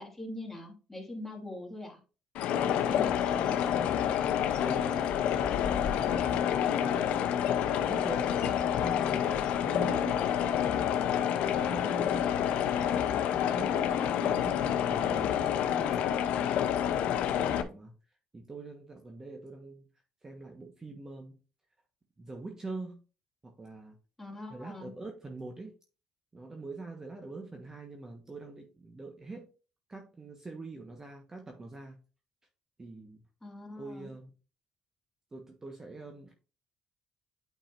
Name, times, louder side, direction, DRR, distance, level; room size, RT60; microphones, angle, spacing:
voice 1, 0.0-2.0 2.6-3.9 24.2-24.9 33.4-34.1, left 2 dB, 10° left, 0 dB, 2.9 m, -43 dB
sound 1, 2.3-17.6, left 9 dB, 75° left, 0.7 m, -28 dB
Bird, 2.9-9.6, left 6 dB, 50° left, 2.5 m, -45 dB
voice 2, 4.4-10.3 10.8-16.4 16.7-18.0 18.3-19.8 20.2-21.4 22.2-23.0 23.4-24.0 24.5-25.7 26.3-29.5 29.9-32.0 32.8-33.2 33.8-34.3 35.3-36.3, right 3 dB, 25° right, 3 dB, 1.3 m, -44 dB
8.9 x 5.4 x 2.6 m, 0.34 s
cardioid pair, 85°, 2 cm